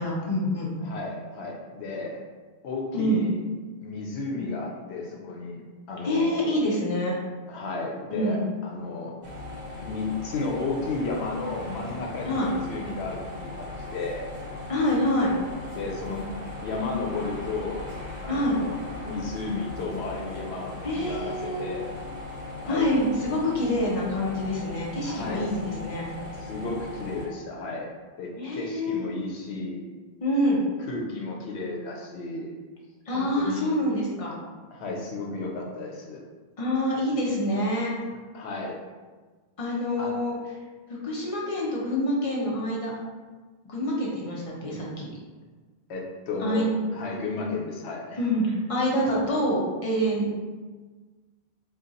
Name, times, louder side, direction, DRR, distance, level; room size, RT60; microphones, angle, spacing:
voice 1, 0.0-0.8 2.9-3.2 6.0-7.1 8.1-8.5 12.2-12.5 14.7-15.3 18.3-18.6 20.8-21.7 22.7-26.1 28.4-29.1 30.2-30.6 33.1-34.3 36.6-37.9 39.6-40.3 41.0-42.9 43.7-45.1 46.4-46.7 48.2-50.3, equal, 35° left, -4 dB, 0.7 m, -26 dB
voice 2, 0.8-2.2 2.6-3.4 3.8-5.6 5.9-6.3 7.5-8.4 8.6-9.1 9.8-14.3 15.7-16.3 16.6-17.8 18.2-21.9 22.6-22.9 25.1-25.4 26.4-27.9 28.2-29.8 30.9-32.6 33.1-33.8 34.7-36.2 38.3-38.8 40.0-40.1 44.7-44.8 45.9-48.2, left 3 dB, 85° left, -1 dB, 0.9 m, -33 dB
sound 1, 9.2-27.3, left 2 dB, 45° right, 0.9 m, -38 dB
2.6 x 2.3 x 3.9 m, 1.4 s
omnidirectional pair, 1.1 m